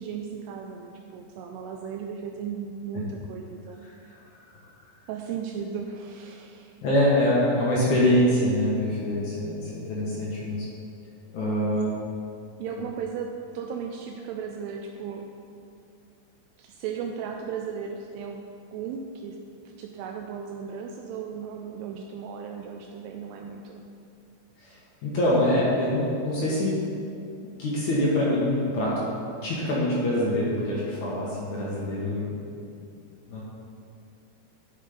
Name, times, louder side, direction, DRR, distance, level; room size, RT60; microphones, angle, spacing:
voice 1, 0.0-3.8 5.1-6.8 11.9-12.2 12.6-15.3 16.6-18.5 18.7-19.4 19.8-23.8, right 6 dB, 85° right, 2 dB, 2.6 m, -36 dB
voice 2, 6.8-10.7 11.3-11.9 24.6-26.8 27.6-29.1 29.4-32.5 33.3-33.4, left 1 dB, 60° left, -6 dB, 2.2 m, -24 dB
11.5 x 5.4 x 5.1 m, 2.5 s
omnidirectional pair, 4.8 m